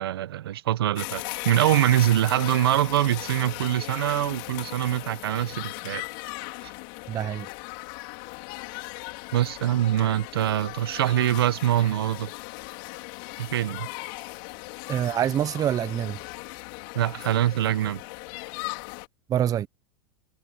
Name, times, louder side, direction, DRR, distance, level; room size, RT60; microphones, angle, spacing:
voice 1, 0.0-6.0 9.3-12.3 13.4-13.9 16.9-18.0, right 12 dB, 85° right, 1.2 m, -24 dB
sound 1, 1.0-19.1, left 28 dB, 60° left, 4.3 m, -38 dB
voice 2, 7.1-7.5 14.9-16.2 19.3-19.7, right 10 dB, 30° right, 0.8 m, -25 dB
supercardioid pair, 120°, 12 cm